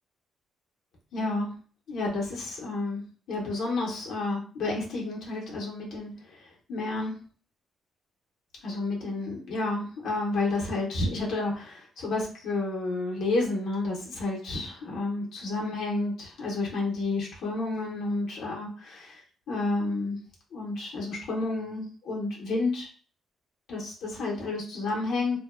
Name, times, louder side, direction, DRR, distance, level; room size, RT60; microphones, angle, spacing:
voice 1, 1.1-1.5 1.9-3.0 3.3-7.1 8.6-19.2 19.5-20.2 20.5-22.9 23.7-25.4, left 2 dB, 75° left, -3 dB, 0.7 m, -30 dB
2.5 x 2.1 x 2.3 m, 0.42 s
cardioid pair, 90°, 0 cm